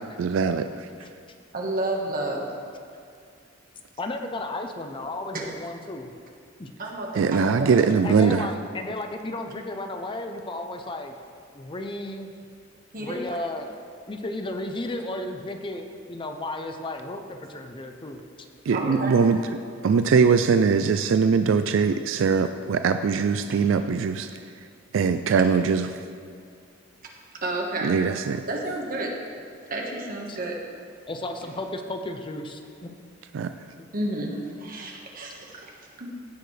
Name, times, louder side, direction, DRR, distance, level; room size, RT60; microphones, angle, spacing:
voice 1, 0.2-0.9 7.1-8.5 18.7-19.4 19.8-24.3 24.9-26.0 27.8-28.4 33.3-33.5, right 5 dB, 70° right, 9 dB, 0.3 m, -21 dB
voice 2, 1.5-2.5 5.3-5.5 6.8-7.8 12.9-13.4 18.7-19.2 27.4-27.9 28.5-29.1 29.7-30.5 33.9-36.1, right 2 dB, 45° right, 0 dB, 1.4 m, -31 dB
voice 3, 4.0-6.1 6.6-6.7 8.0-11.2 11.5-12.3 12.9-13.7 14.1-18.2 30.3-30.4 31.1-32.9 33.8-33.9, left 2 dB, 25° left, 5 dB, 0.6 m, -34 dB
16.0 x 6.9 x 3.3 m, 2.3 s
head